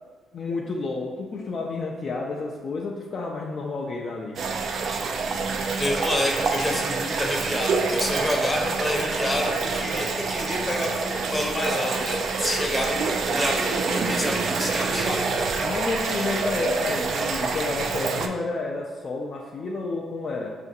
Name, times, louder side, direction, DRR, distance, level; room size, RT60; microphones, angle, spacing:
voice 1, 0.3-4.4 15.6-20.5, left 3 dB, 50° left, -1 dB, 0.4 m, -30 dB
sound 1, 4.4-18.3, right 4 dB, 60° right, 0.3 m, -26 dB
voice 2, 5.8-15.4 16.2-16.3, left 1 dB, 20° left, 0 dB, 0.7 m, -28 dB
5.6 x 2.4 x 2.6 m, 1.4 s
cardioid pair, 90°, 0 cm